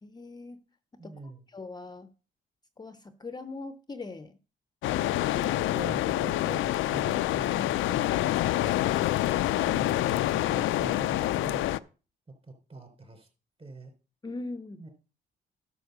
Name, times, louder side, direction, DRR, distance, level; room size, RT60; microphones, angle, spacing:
voice 1, 0.0-0.6 1.0-1.1 1.5-2.1 2.8-4.4 14.2-14.8, left 3 dB, 20° left, 11 dB, 0.7 m, -41 dB
voice 2, 1.0-1.5 5.6-9.2 9.5-11.7 12.4-13.3 13.6-13.9 14.8-14.9, right 3 dB, 30° right, 4 dB, 3.7 m, -44 dB
sound 1, 4.8-11.8, left 14 dB, 80° left, 0.5 m, -27 dB
11.5 x 4.2 x 6.7 m, 0.34 s
cardioid pair, 90°, 20 cm